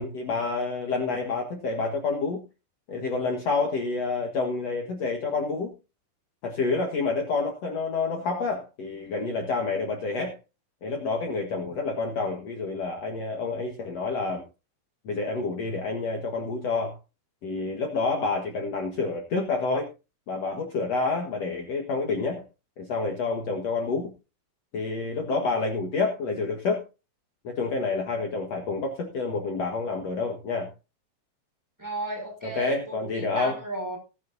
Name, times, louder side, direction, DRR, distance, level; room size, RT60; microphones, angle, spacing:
voice 1, 0.0-2.4 2.9-5.7 6.4-10.3 10.8-14.4 15.0-16.9 17.4-19.9 20.3-22.4 22.8-24.1 24.7-26.8 27.4-30.7 32.4-33.6, left 3 dB, 65° left, 2 dB, 1.6 m, -28 dB
voice 2, 31.8-34.0, right 2 dB, 5° right, 1 dB, 5.1 m, -34 dB
19.0 x 10.5 x 2.7 m, 0.30 s
omnidirectional pair, 5.4 m